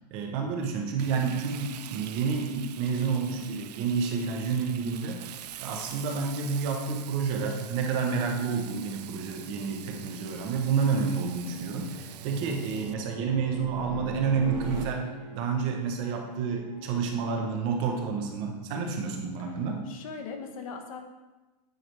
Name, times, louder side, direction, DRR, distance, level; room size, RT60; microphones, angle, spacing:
voice 1, 0.1-5.2 5.6-15.0 15.3-19.8, right 5 dB, 25° right, 2 dB, 0.6 m, -29 dB
Frying (food), 1.0-12.9, right 12 dB, 75° right, 0.4 m, -45 dB
sound 1, 5.3-14.8, right 4 dB, 90° right, 1.6 m, -44 dB
Bowed string instrument, 13.7-18.8, left 1 dB, ahead, 0.9 m, -49 dB
voice 2, 18.7-19.1 19.9-21.0, left 5 dB, 55° left, 5 dB, 0.9 m, -40 dB
9.0 x 3.2 x 4.5 m, 1.1 s
supercardioid pair, 180°, 21 cm